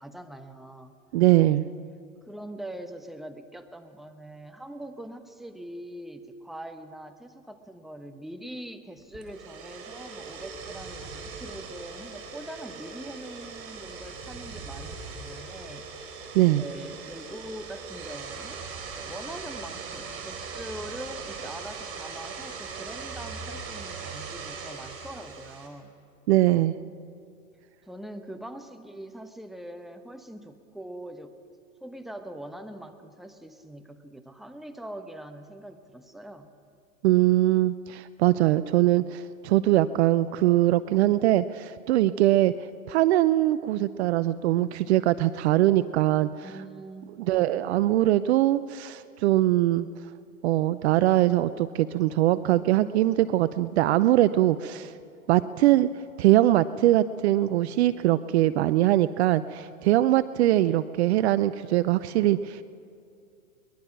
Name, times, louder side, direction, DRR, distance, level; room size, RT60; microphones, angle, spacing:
voice 1, 0.0-0.9 1.6-1.7 2.3-15.9 16.5-18.6 18.9-26.0 27.8-31.3 31.8-36.5 46.4-47.9 60.4-61.0, right 1 dB, ahead, 7 dB, 1.1 m, -42 dB
voice 2, 1.1-1.6 16.3-16.6 26.3-26.7 37.0-42.5 42.9-46.5 47.2-49.9 50.4-54.9 55.3-55.9 56.2-62.6, right 14 dB, 50° right, 15 dB, 0.7 m, -22 dB
sound 1, 9.1-25.7, right 5 dB, 35° right, 4.1 m, -40 dB
23.0 x 20.5 x 6.0 m, 2.5 s
hypercardioid pair, 110°, 42 cm